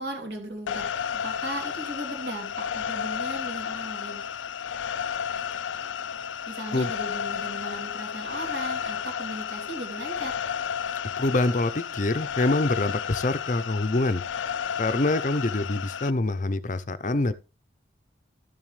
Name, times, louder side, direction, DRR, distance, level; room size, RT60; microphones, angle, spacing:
voice 1, 0.0-4.2 6.5-10.3, right 1 dB, 65° right, 3.2 m, -37 dB
sound 1, 0.7-16.1, left 8 dB, 85° left, 0.4 m, -32 dB
voice 2, 11.2-14.2 14.8-17.3, left 2 dB, 40° left, 0.6 m, -25 dB
13.0 x 7.3 x 3.3 m
head